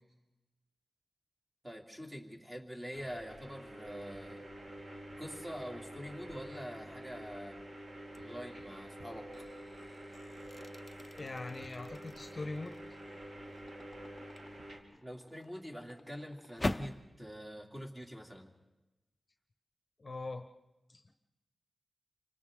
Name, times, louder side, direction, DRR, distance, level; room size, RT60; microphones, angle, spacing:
voice 1, 1.6-4.4 5.2-7.6 8.2-9.3 15.0-18.5, equal, 15° right, 1 dB, 2.7 m, -45 dB
sound 1, 2.9-14.8, right 1 dB, 55° right, 2.8 m, -48 dB
sound 2, 8.1-8.5 9.0-17.1, left 1 dB, 20° left, 0.7 m, -44 dB
voice 2, 11.1-12.8 20.0-20.5 20.9-21.1, left 2 dB, 35° left, 6 dB, 1.0 m, -42 dB
29.0 x 25.5 x 3.8 m, 1.0 s
wide cardioid pair, 110°, 0 cm